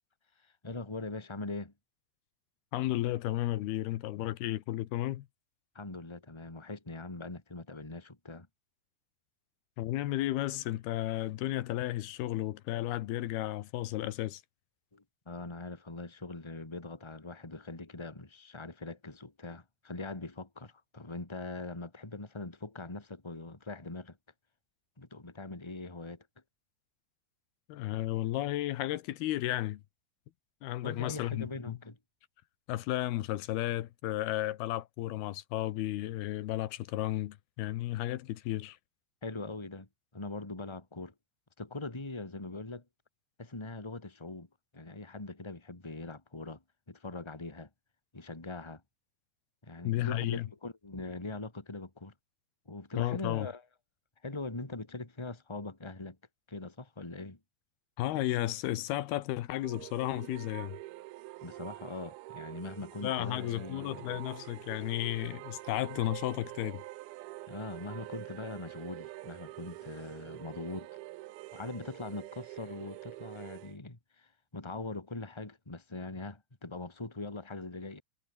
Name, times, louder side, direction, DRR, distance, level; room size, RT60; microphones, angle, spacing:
voice 1, 0.4-1.7 5.7-8.5 14.9-24.2 25.0-26.3 30.8-32.0 39.2-39.9 40.1-41.1 41.6-42.8 43.4-44.5 44.7-46.6 46.9-47.7 48.1-48.8 49.6-52.1 52.7-53.6 54.2-56.2 56.5-57.4 61.4-64.2 67.5-70.9 71.5-78.0, left 2 dB, 10° left, 2.5 m, -42 dB
voice 2, 2.7-5.3 9.8-14.4 27.7-29.8 30.6-31.8 32.7-38.8 49.8-50.5 53.0-53.5 58.0-60.8 63.0-66.8, left 15 dB, 85° left, 3.1 m, -33 dB
sound 1, 59.6-73.8, right 19 dB, 90° right, 2.6 m, -46 dB
omnidirectional pair, 4.4 m